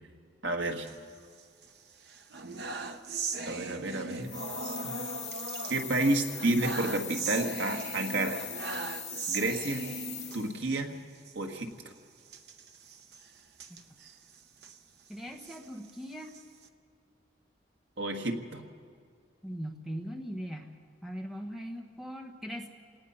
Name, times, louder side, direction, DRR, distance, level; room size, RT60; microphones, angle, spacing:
voice 1, 0.4-0.9 3.5-5.0 5.7-8.4 9.3-9.8 10.3-10.9 11.3-11.7 18.0-18.6, right 2 dB, 85° right, 3 dB, 1.7 m, -30 dB
sound 1, 0.7-1.7 2.0-10.8 11.2-11.3 11.6-11.7 12.3-14.8 15.3-16.7, right 4 dB, 65° right, 1.0 m, -39 dB
sound 2, 4.2-10.6, left 8 dB, 40° left, 1.6 m, -41 dB
voice 2, 15.1-16.3 19.4-20.7 21.0-22.7, equal, ahead, 2 dB, 1.2 m, -40 dB
28.0 x 18.5 x 5.7 m, 2.2 s
head